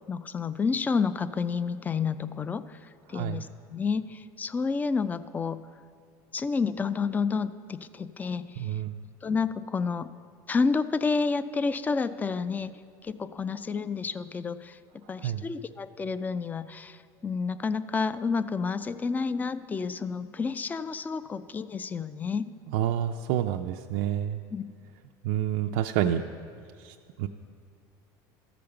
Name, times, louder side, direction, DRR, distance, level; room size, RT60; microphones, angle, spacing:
voice 1, 0.1-5.6 6.3-8.7 9.2-10.1 10.5-12.7 13.0-14.8 15.1-22.5 24.5-24.6, left 5 dB, 15° left, 14 dB, 0.3 m, -30 dB
voice 2, 3.1-3.4 8.6-9.0 15.2-15.4 22.7-24.4 25.2-26.2 26.8-27.3, right 11 dB, 75° right, 4 dB, 0.4 m, -28 dB
13.5 x 5.1 x 6.9 m, 2.4 s
supercardioid pair, 120°, 10 cm